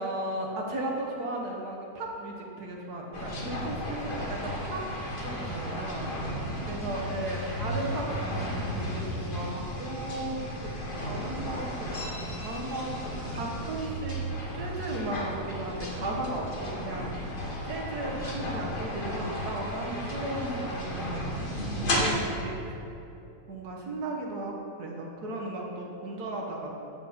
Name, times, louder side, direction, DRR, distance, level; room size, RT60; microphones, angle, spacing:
voice 1, 0.0-4.8 5.2-6.1 6.6-14.2 14.5-17.1 17.6-21.2 21.7-22.8 23.5-26.7, right 1 dB, 90° right, 0 dB, 1.7 m, -35 dB
sound 1, 3.1-22.1, equal, 35° left, 1.2 m, -34 dB
8.9 x 7.8 x 4.3 m, 2.8 s
omnidirectional pair, 1.6 m